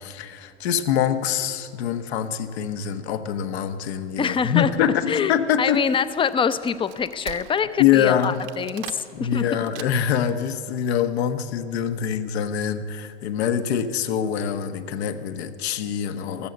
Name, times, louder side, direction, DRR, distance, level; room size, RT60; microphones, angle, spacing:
voice 1, 0.0-6.0 7.8-8.4 9.1-16.5, left 9 dB, 65° left, 9 dB, 1.2 m, -24 dB
voice 2, 4.2-4.7 5.1-9.4, left 6 dB, 15° left, 14 dB, 0.6 m, -25 dB
Wood, 5.5-10.3, right 14 dB, 50° right, 1.0 m, -42 dB
14.5 x 14.0 x 6.8 m, 2.5 s
hypercardioid pair, 95°, 34 cm